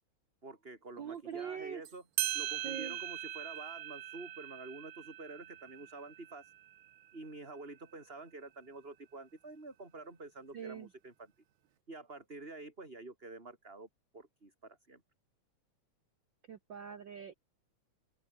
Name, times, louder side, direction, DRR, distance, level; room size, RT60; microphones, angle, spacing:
voice 1, 0.4-2.0 2.3-6.5 7.1-11.1 11.9-13.9 14.1-15.0, right 3 dB, 20° right, 4.3 m, -48 dB
voice 2, 1.0-1.8 2.6-3.0 10.5-10.9 16.5-17.3, right 8 dB, 55° right, 1.4 m, -43 dB
sound 1, 1.8-7.3, right 13 dB, 70° right, 1.2 m, -40 dB
open air
omnidirectional pair, 3.4 m